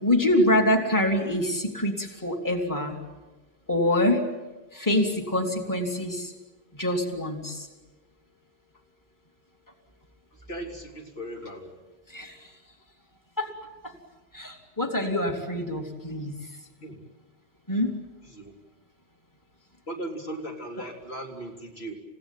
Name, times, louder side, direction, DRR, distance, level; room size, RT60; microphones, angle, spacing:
voice 1, 0.0-3.0 3.7-4.2 4.7-6.3 6.7-7.7 12.1-12.4 13.4-13.5 13.8-13.9 14.3-16.3 17.7-17.9, left 1 dB, 20° left, 2 dB, 2.9 m, -25 dB
voice 2, 10.5-11.8 16.8-17.0 18.2-18.5 19.9-21.9, right 1 dB, 80° left, 0 dB, 4.1 m, -37 dB
30.0 x 16.5 x 9.1 m, 1.2 s
omnidirectional pair, 1.0 m